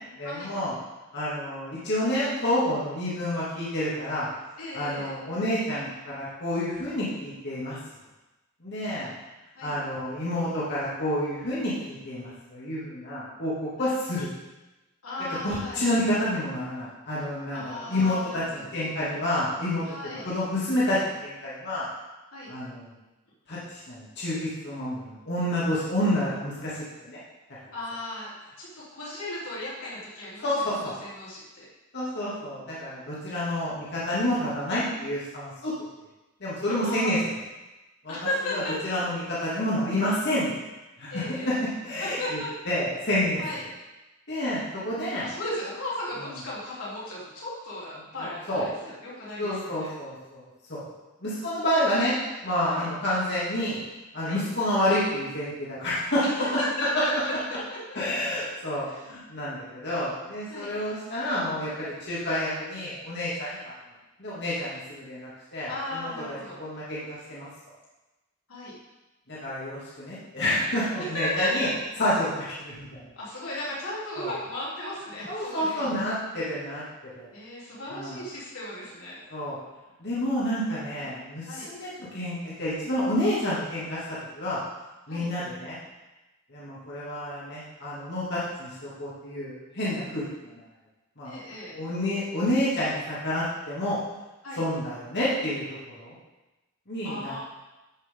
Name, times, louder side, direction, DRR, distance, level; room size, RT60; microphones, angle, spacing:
voice 1, 0.2-0.7 1.1-4.3 4.7-7.8 8.6-9.1 9.6-13.5 13.8-14.3 15.4-19.8 20.2-21.9 22.5-22.9 23.5-27.2 30.4-30.9 31.9-35.7 36.4-37.2 38.0-38.1 38.5-40.5 41.0-41.5 41.8-43.4 44.3-45.2 48.5-48.6 49.4-50.4 50.7-50.8 51.2-52.2 52.4-53.8 54.1-56.2 56.9-57.0 57.9-63.7 64.2-67.5 69.3-71.7 72.0-73.1 74.2-74.3 75.3-76.8 77.1-77.3 77.9-78.2 79.3-79.6 80.0-84.0 84.4-84.6 85.1-85.8 86.5-90.6 91.2-91.4 91.7-94.0 94.5-96.1 96.9-97.4, left 1 dB, 55° left, -8 dB, 2.6 m, -29 dB
voice 2, 4.6-5.1 9.6-9.7 13.8-13.9 15.0-15.8 17.5-18.6 19.9-20.2 22.3-22.5 27.7-28.3 28.6-31.6 34.2-34.4 36.7-37.3 38.1-38.7 41.1-41.5 42.0-42.5 43.4-43.6 45.2-49.9 52.7-52.9 54.2-54.4 56.2-57.3 57.7-57.8 58.8-59.1 60.5-60.7 65.7-66.6 68.5-68.7 71.0-71.7 73.2-75.9 77.3-79.2 80.9-81.1 81.5-81.7 85.1-85.3 91.2-91.7 94.4-94.6 97.0-97.4, left 1 dB, 90° left, -8 dB, 3.7 m, -35 dB
12.5 x 6.3 x 3.9 m, 1.1 s
head